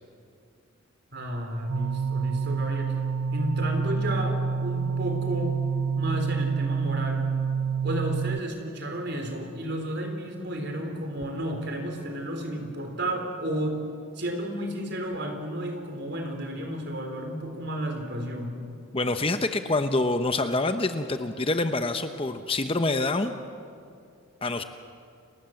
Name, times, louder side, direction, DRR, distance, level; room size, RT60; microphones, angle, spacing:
voice 1, 1.1-3.0 3.3-5.6 6.0-7.2 7.8-13.8 14.2-18.6, right 1 dB, 50° right, 4 dB, 3.9 m, -32 dB
sound 1, 1.7-8.4, right 6 dB, 75° right, 0.5 m, -27 dB
voice 2, 18.9-23.3 24.4-24.6, left 2 dB, 25° left, 8 dB, 0.8 m, -26 dB
30.0 x 20.0 x 7.8 m, 2.4 s
head